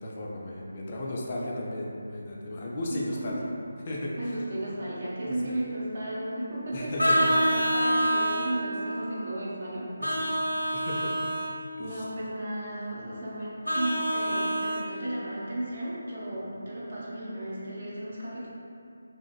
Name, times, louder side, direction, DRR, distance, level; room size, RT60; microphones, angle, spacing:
voice 1, 0.0-3.4 3.9-4.4 5.3-5.4 6.7-7.3 10.0-10.5 10.7-11.3 11.8-12.0, left 1 dB, 30° left, -4 dB, 0.3 m, -35 dB
voice 2, 2.9-3.4 4.2-9.9 11.8-18.5, right 1 dB, 45° right, -7 dB, 0.5 m, -34 dB
Vehicle horn car horn honking, 7.0-8.5 10.0-11.5 13.6-14.8, equal, 90° left, 0.6 m, -26 dB
2.5 x 2.3 x 2.3 m, 2.5 s
figure-of-eight pair, 155°, 0 cm